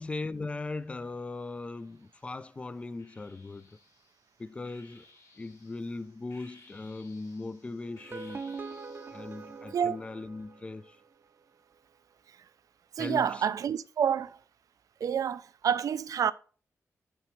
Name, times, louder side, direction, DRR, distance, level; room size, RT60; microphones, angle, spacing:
voice 1, 0.0-3.8 4.4-5.1 5.4-8.6 9.1-11.0 13.0-13.5, left 3 dB, 20° left, 0.3 m, -39 dB
sound 1, 1.6-2.3 3.0-9.6, left 3 dB, 65° left, 2.4 m, -59 dB
sound 2, 7.9-11.0, right 4 dB, 35° right, 0.6 m, -43 dB
voice 2, 13.0-14.4 15.0-16.3, right 8 dB, 80° right, 0.5 m, -28 dB
7.5 x 6.0 x 3.1 m
wide cardioid pair, 175°, 6 cm